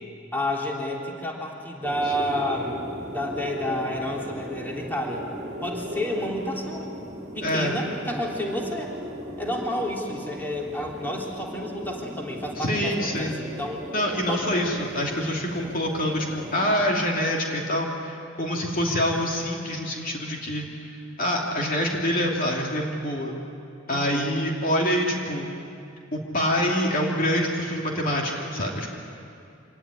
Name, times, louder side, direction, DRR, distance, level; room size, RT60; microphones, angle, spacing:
voice 1, 0.3-5.3 5.6-7.0 7.3-8.9 9.4-13.8 14.3-14.5 23.9-24.3, left 1 dB, 10° left, -2 dB, 3.3 m, -30 dB
sound 1, 1.8-16.9, equal, 35° right, 2.5 m, -37 dB
voice 2, 7.4-7.7 12.6-13.4 13.9-23.3 23.9-25.5 26.1-28.9, equal, 45° left, -1 dB, 2.7 m, -26 dB
26.0 x 18.5 x 9.9 m, 2.6 s
head